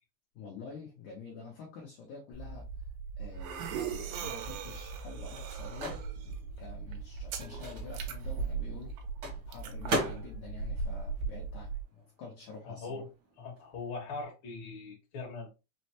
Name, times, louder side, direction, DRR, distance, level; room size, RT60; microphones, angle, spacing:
voice 1, 0.4-2.7 3.2-6.0 6.2-9.0 9.5-13.0, left 5 dB, 85° left, 1.7 m, -48 dB
sound 1, 2.3-11.8, right 5 dB, 90° right, 2.8 m, -38 dB
Microwave oven, 4.9-12.1 12.3-14.2, right 1 dB, 65° right, 1.2 m, -40 dB
voice 2, 12.7-13.1 13.4-15.5, left 3 dB, 65° left, 1.2 m, -41 dB
6.1 x 2.1 x 2.8 m
omnidirectional pair, 4.6 m